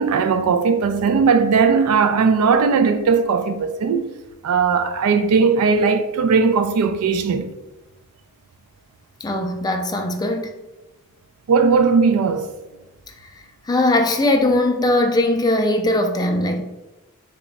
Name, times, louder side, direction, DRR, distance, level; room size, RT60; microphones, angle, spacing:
voice 1, 0.0-4.1 4.4-7.5 11.5-12.5, right 5 dB, 75° right, 0.4 m, -18 dB
voice 2, 9.2-10.5 13.7-16.6, left 1 dB, 20° left, 0.3 m, -19 dB
3.5 x 2.2 x 3.8 m
head